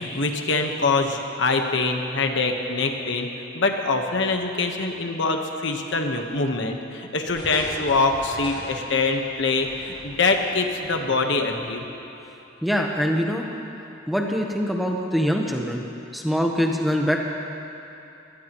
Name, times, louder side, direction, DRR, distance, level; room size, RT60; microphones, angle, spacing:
voice 1, 0.0-3.3 3.5-11.8, left 3 dB, 60° left, 4 dB, 1.2 m, -24 dB
sound 1, 7.3-10.8 11.1-11.2, equal, 25° left, 4.4 m, -40 dB
voice 2, 12.6-13.5 14.1-15.8 16.1-17.2, equal, ahead, 0 dB, 1.0 m, -23 dB
23.5 x 19.0 x 3.1 m, 2.9 s
head